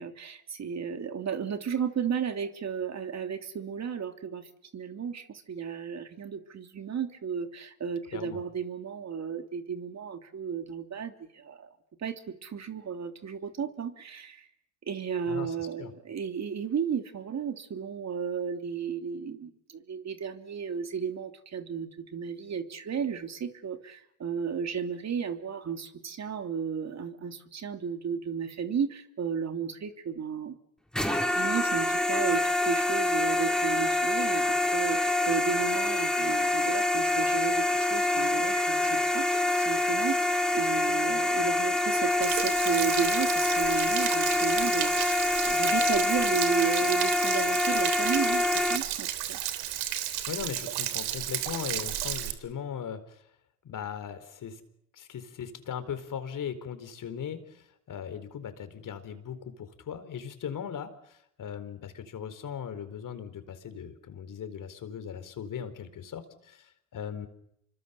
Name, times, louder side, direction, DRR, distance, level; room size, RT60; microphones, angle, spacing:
voice 1, 0.0-11.7 12.0-14.5 14.9-30.6 31.3-49.4, right 7 dB, 40° right, 7 dB, 2.9 m, -34 dB
voice 2, 8.1-8.4 15.3-15.9 50.3-53.2 53.6-54.6 54.9-67.3, left 8 dB, 50° left, 10 dB, 4.3 m, -39 dB
sound 1, 30.9-48.8, left 2 dB, ahead, 4.2 m, -26 dB
Stream / Splash splatter / Trickle dribble, 42.2-52.3, right 12 dB, 70° right, 3.2 m, -33 dB
28.0 x 24.5 x 7.0 m, 0.76 s
hypercardioid pair, 75°, 40 cm